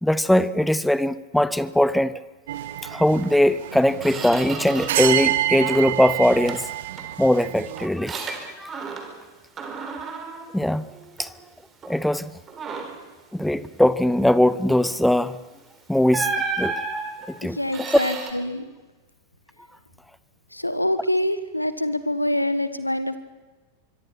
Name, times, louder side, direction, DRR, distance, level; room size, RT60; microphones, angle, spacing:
voice 1, 0.0-2.1 2.8-6.6 7.2-8.9 10.5-10.9 11.2-11.3 11.9-12.3 13.3-15.4 15.9-16.3 16.6-16.8 17.3-18.0, left 1 dB, ahead, 17 dB, 0.9 m, -21 dB
sound 1, 2.5-7.9, right 13 dB, 55° right, 1.4 m, -28 dB
Squeak, 3.2-3.4 3.7-5.2 5.5-6.0 6.5-9.3 9.6-11.4 11.8-12.0 12.5-13.1 15.2-15.4 16.1-18.3, right 4 dB, 25° right, 4.2 m, -33 dB
voice 2, 17.4-18.7 20.5-23.2, left 1 dB, 85° left, 13 dB, 1.3 m, -25 dB
25.5 x 23.0 x 6.0 m, 1.2 s
figure-of-eight pair, 90°, 0 cm